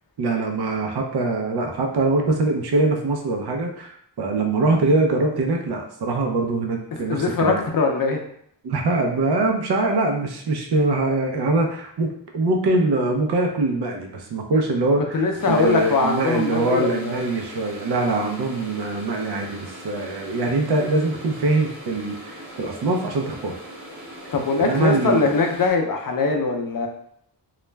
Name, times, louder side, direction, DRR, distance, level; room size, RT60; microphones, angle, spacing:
voice 1, 0.2-7.6 8.6-23.6 24.6-25.3, right 2 dB, 65° right, 2 dB, 0.6 m, -23 dB
voice 2, 6.9-8.2 15.1-17.2 24.3-26.9, left 4 dB, 50° left, 3 dB, 0.5 m, -22 dB
sound 1, 15.4-25.7, equal, 30° right, 0.8 m, -40 dB
2.3 x 2.0 x 3.2 m, 0.68 s
wide cardioid pair, 110°, 43 cm